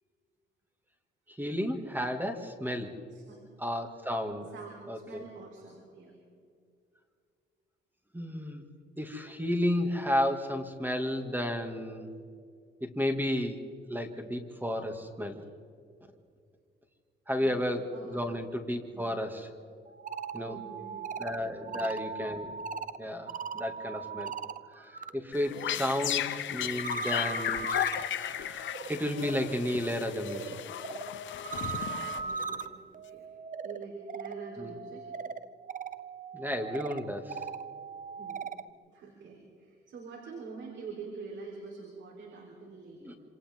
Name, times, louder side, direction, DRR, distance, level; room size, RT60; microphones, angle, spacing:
voice 1, 1.4-2.9 3.6-4.5 4.9-5.2 8.1-8.6 9.0-12.1 12.8-13.6 13.9-15.4 17.3-19.5 20.3-20.6 21.2-22.6 23.0-24.3 24.7-27.6 28.1-30.6 34.6-34.7 36.3-37.4 43.0-43.1, left 1 dB, 10° right, 5 dB, 2.4 m, -32 dB
voice 2, 3.1-3.4 4.5-6.1 17.9-18.2 18.9-19.1 20.4-21.1 21.6-21.9 32.1-33.3 33.6-35.1 37.9-38.5 38.9-43.2, right 4 dB, 70° right, 0 dB, 4.0 m, -46 dB
sound 1, 19.9-25.1 25.4-38.7, right 6 dB, 40° right, 0.8 m, -40 dB
sound 2, 25.3-32.6, left 11 dB, 70° left, 1.0 m, -35 dB
27.5 x 26.5 x 3.8 m, 2.3 s
cardioid pair, 90°, 20 cm